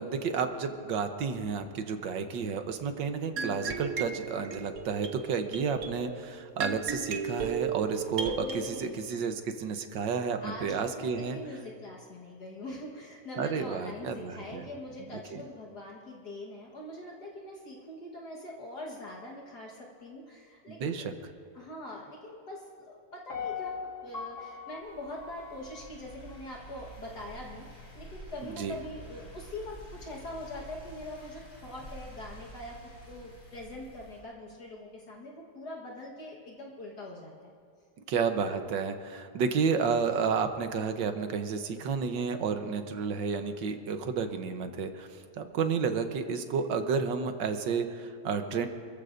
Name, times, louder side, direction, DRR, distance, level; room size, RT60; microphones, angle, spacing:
voice 1, 0.0-11.4 13.4-14.7 15.3-15.4 20.7-21.1 28.6-28.7 38.1-45.1 45.4-48.7, right 5 dB, 80° right, 7 dB, 1.6 m, -31 dB
sound 1, 3.4-8.6, right 5 dB, 55° right, 1.3 m, -35 dB
voice 2, 8.4-9.0 10.4-21.1 21.5-37.5 42.4-42.9, left 1 dB, 60° left, -2 dB, 2.0 m, -43 dB
Piano, 23.3-26.4 26.8-26.9, left 6 dB, 45° left, 2.4 m, -40 dB
sound 2, 24.8-34.2, right 1 dB, 75° left, 5.8 m, -49 dB
28.0 x 15.0 x 2.6 m, 2.2 s
omnidirectional pair, 2.0 m